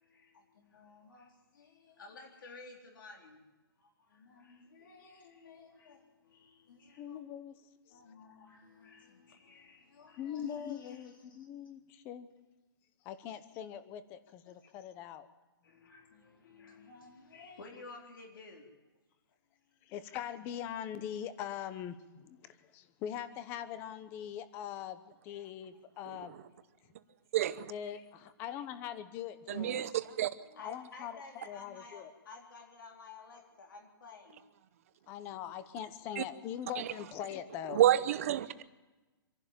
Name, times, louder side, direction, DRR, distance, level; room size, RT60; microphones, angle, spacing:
voice 1, 0.0-3.4 3.8-7.2 7.9-11.4 14.5-14.6 15.6-18.7 30.4-34.5, left 4 dB, 55° left, 3.8 m, -53 dB
voice 2, 7.0-7.6 10.2-12.3 13.0-15.3 19.8-26.3 27.7-29.9 30.6-31.2 31.4-32.1 35.1-37.8, left 10 dB, 15° left, 0.8 m, -42 dB
voice 3, 27.3-27.7 29.5-29.9 30.2-30.3 36.2-36.3 36.8-36.9 37.7-38.6, right 12 dB, 35° right, 0.8 m, -28 dB
26.0 x 11.5 x 8.9 m
hypercardioid pair, 170°, 13 cm